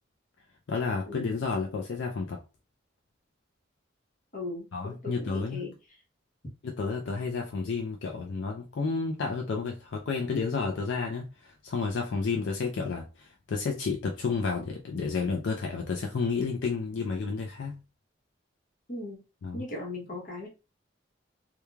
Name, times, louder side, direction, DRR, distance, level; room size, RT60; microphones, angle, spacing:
voice 1, 0.7-2.4 4.7-5.6 6.6-17.8 19.4-19.6, left 4 dB, 70° left, 0.4 m, -31 dB
voice 2, 4.3-5.7 18.9-19.2 19.5-20.5, left 2 dB, 45° left, 0.9 m, -38 dB
3.1 x 2.3 x 2.2 m
head